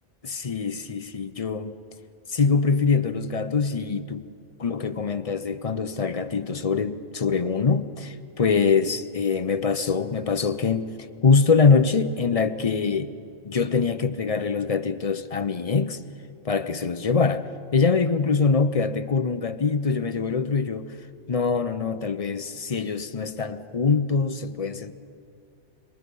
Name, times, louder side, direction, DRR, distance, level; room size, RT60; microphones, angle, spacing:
voice 1, 0.2-1.8 2.3-4.3 4.6-13.1 13.4-16.0 16.4-17.5 17.7-20.9 21.3-24.9, left 5 dB, 35° left, 0.7 m, -24 dB
26.0 x 23.5 x 5.5 m
omnidirectional pair, 1.2 m